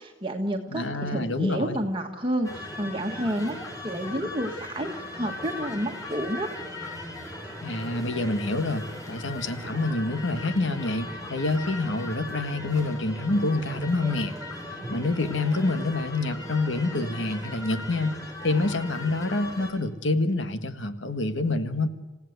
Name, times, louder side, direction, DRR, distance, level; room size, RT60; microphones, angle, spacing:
voice 1, 0.0-6.5, right 1 dB, 25° right, 2 dB, 1.5 m, -30 dB
voice 2, 0.7-1.8 7.6-14.3 14.9-21.9, left 2 dB, 70° left, 9 dB, 1.6 m, -27 dB
sound 1, 2.4-19.7, left 1 dB, 20° left, 7.0 m, -38 dB
28.0 x 16.0 x 8.1 m, 1.2 s
head